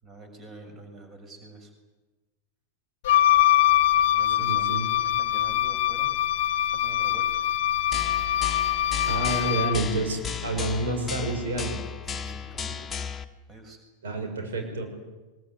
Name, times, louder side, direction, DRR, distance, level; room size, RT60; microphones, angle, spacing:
voice 1, 0.0-1.7 4.0-4.7 5.0-6.1 6.7-7.4 12.1-12.9 13.5-13.8, right 2 dB, 25° right, 6 dB, 6.4 m, -46 dB
Wind instrument woodwind instrument, 3.0-9.8, left 13 dB, 55° left, 1.1 m, -23 dB
voice 2, 4.4-4.9 9.1-11.8 14.0-14.9, right 2 dB, 65° right, 3 dB, 6.4 m, -29 dB
sound 1, 7.9-13.2, left 7 dB, 15° left, 1.5 m, -34 dB
23.5 x 23.0 x 9.7 m, 1.2 s
figure-of-eight pair, 90°, 0 cm